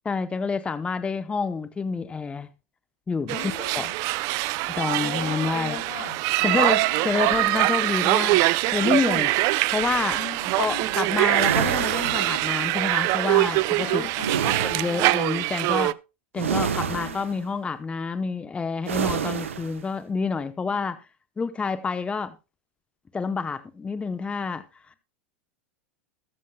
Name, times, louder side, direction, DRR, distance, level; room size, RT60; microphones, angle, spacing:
voice 1, 0.0-2.5 3.1-3.4 3.7-3.9 4.7-5.8 6.4-8.4 8.7-9.3 9.7-10.2 10.6-14.0 14.6-15.9 16.3-21.0 21.4-22.4 23.1-24.6, left 4 dB, 15° left, 0.9 m, -28 dB
voice 2, 3.2-4.0 4.8-6.2 6.7-7.2 10.1-11.0 13.8-15.1 16.6-17.2 20.7-20.9, left 6 dB, 75° left, 3.5 m, -39 dB
sound 1, 3.3-15.9, right 20 dB, 50° right, 0.5 m, -24 dB
sound 2, 11.3-12.9 14.2-15.1 16.4-17.4 18.9-19.8, right 7 dB, 80° right, 1.0 m, -28 dB
21.0 x 7.5 x 2.3 m
hypercardioid pair, 100°, 7 cm